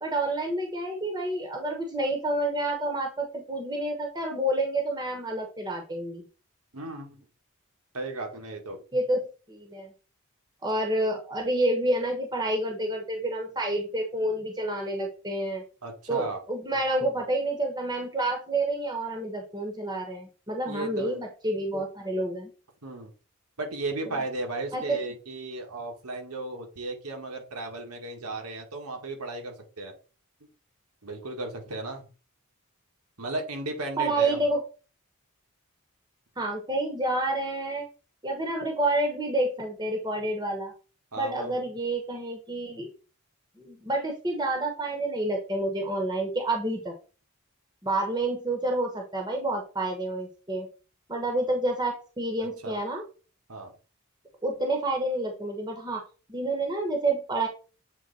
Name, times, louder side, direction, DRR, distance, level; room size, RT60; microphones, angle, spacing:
voice 1, 0.0-6.2 8.9-9.9 10.6-15.6 16.1-22.5 24.1-24.2 24.7-25.0 34.0-34.6 36.4-37.8 38.2-40.7 41.1-42.9 43.6-46.9 47.8-50.7 51.1-53.0 54.4-56.0 56.3-57.5, right 1 dB, 20° right, 2 dB, 0.9 m, -29 dB
voice 2, 6.7-7.3 7.9-8.8 15.8-16.4 20.7-21.2 22.8-23.1 23.6-29.9 31.0-32.1 33.2-34.5 41.1-41.6 52.4-52.8 53.5-53.7, right 2 dB, 90° right, 3 dB, 1.8 m, -35 dB
7.5 x 3.4 x 4.1 m, 0.35 s
head